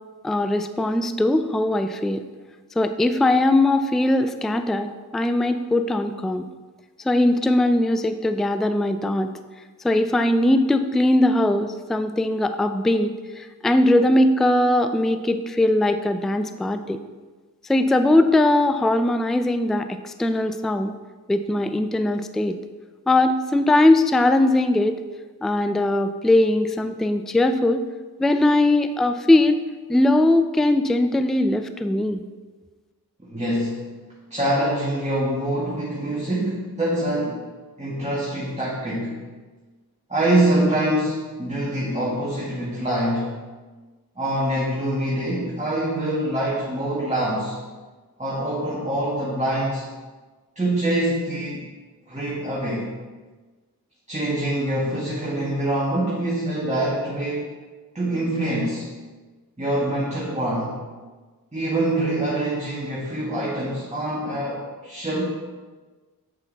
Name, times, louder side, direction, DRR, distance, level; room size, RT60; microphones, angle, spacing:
voice 1, 0.2-2.2 2.8-6.5 7.0-9.3 9.8-17.0 17.7-21.0 21.3-22.6 23.1-25.0 25.4-27.8 28.2-29.6 29.9-32.2, left 1 dB, ahead, 9 dB, 0.4 m, -20 dB
voice 2, 33.3-33.8 34.3-37.5 37.8-39.2 40.1-43.3 44.2-47.6 48.2-49.8 50.6-51.6 52.1-52.9 54.1-57.6 57.9-58.9 59.6-60.8 61.5-65.2, right 1 dB, 20° right, -7 dB, 2.0 m, -25 dB
8.2 x 5.5 x 4.1 m, 1.3 s
cardioid pair, 45°, 38 cm